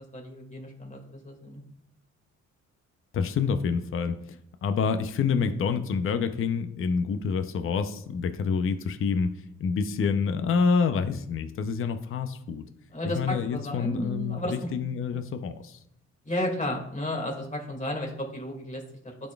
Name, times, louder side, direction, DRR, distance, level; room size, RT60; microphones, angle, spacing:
voice 1, 0.1-1.6 12.9-14.7 15.1-15.2 16.2-18.8, left 1 dB, 25° left, 0 dB, 2.0 m, -33 dB
voice 2, 3.1-9.3 9.6-12.7 13.2-15.8, left 5 dB, 45° left, 8 dB, 0.6 m, -27 dB
12.0 x 4.2 x 2.3 m, 0.73 s
cardioid pair, 90°, 30 cm